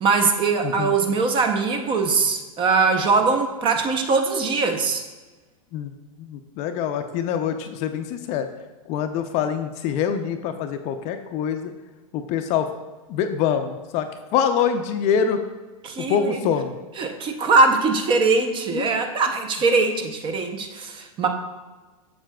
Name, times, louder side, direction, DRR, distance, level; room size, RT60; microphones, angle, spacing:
voice 1, 0.0-5.0 15.8-16.4 17.0-21.3, right 4 dB, 30° right, 6 dB, 0.7 m, -21 dB
voice 2, 0.6-1.0 5.7-5.9 6.2-8.5 8.9-11.7 12.1-12.7 13.1-14.1 14.3-15.4 16.1-16.7 18.7-18.9, left 8 dB, 40° left, 7 dB, 0.5 m, -24 dB
7.4 x 6.7 x 2.3 m, 1.2 s
hypercardioid pair, 115°, 18 cm